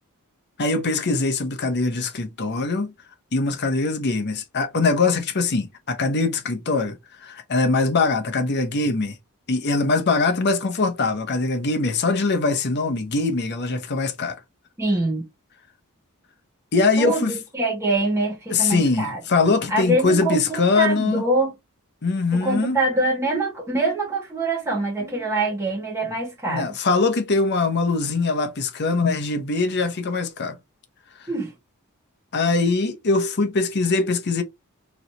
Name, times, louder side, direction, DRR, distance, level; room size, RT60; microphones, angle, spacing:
voice 1, 0.6-2.9 3.3-7.0 7.2-9.1 9.5-14.4 16.7-17.3 18.5-21.2 22.0-22.8 25.1-25.2 26.5-30.6 32.3-34.4, left 3 dB, 50° left, 0.8 m, -22 dB
voice 2, 14.8-15.3 17.0-19.2 19.7-21.5 22.3-26.7 31.3-31.5, right 2 dB, 15° right, 1.9 m, -24 dB
3.9 x 3.1 x 3.0 m
head